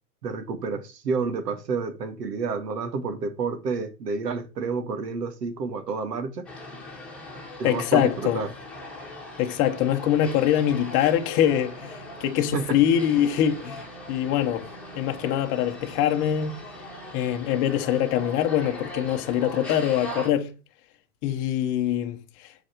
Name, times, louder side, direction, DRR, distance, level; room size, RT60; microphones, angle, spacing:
voice 1, 0.2-6.5 7.6-8.5 12.5-12.8, right 4 dB, 75° right, 2.3 m, -29 dB
sound 1, 6.5-20.3, left 1 dB, ahead, 2.1 m, -40 dB
voice 2, 7.6-8.4 9.4-13.8 14.1-14.7 14.9-16.5 17.1-20.5 21.2-22.5, left 10 dB, 25° left, 1.0 m, -24 dB
7.3 x 5.0 x 6.4 m
hypercardioid pair, 150°, 48 cm